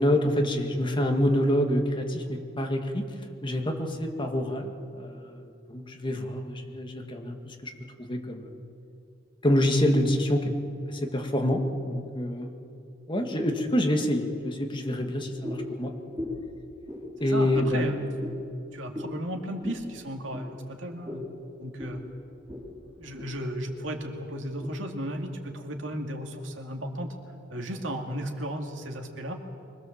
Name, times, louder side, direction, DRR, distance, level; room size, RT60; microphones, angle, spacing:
voice 1, 0.0-3.1 3.4-7.7 8.1-8.5 9.4-10.5 10.9-12.5 13.1-15.9 17.2-18.0, left 1 dB, 25° left, 3 dB, 2.0 m, -27 dB
sound 1, 15.4-15.7 16.1-16.5 16.8-17.0 17.5-17.7 18.2-18.4 18.9-19.1 19.6-19.8 20.3-20.5 21.0-21.3 21.8-22.0 22.5-22.6 23.0-23.3 23.8-24.0 24.6-24.7, left 1 dB, 15° right, 5.7 m, -37 dB
voice 2, 17.2-18.0 18.7-21.3 21.6-22.0 23.0-27.1 27.5-29.4, right 1 dB, 80° right, 3 dB, 2.3 m, -35 dB
24.5 x 20.0 x 7.4 m, 2.5 s
head